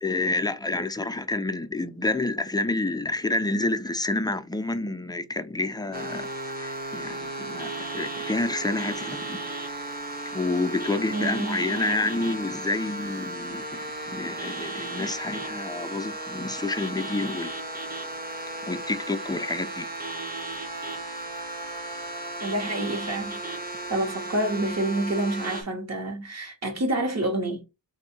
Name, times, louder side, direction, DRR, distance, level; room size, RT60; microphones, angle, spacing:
voice 1, 0.0-9.4 10.3-17.5 18.7-19.9, left 2 dB, 10° left, 0.4 m, -29 dB
sound 1, 5.9-25.6, right 2 dB, 25° right, 0.8 m, -35 dB
voice 2, 11.1-12.0 22.4-27.6, right 1 dB, 45° right, 1.3 m, -28 dB
3.6 x 2.6 x 4.3 m
wide cardioid pair, 165°, 37 cm